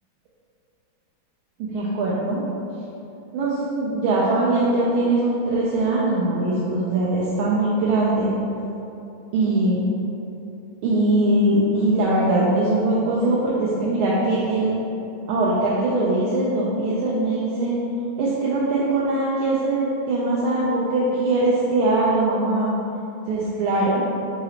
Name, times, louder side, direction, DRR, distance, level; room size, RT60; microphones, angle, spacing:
voice 1, 1.6-2.4 3.3-8.3 9.3-9.8 10.8-14.7 15.3-17.8 18.2-22.7 23.3-24.0, right 2 dB, 85° right, -7 dB, 1.5 m, -21 dB
3.9 x 2.8 x 4.3 m, 2.8 s
omnidirectional pair, 2.3 m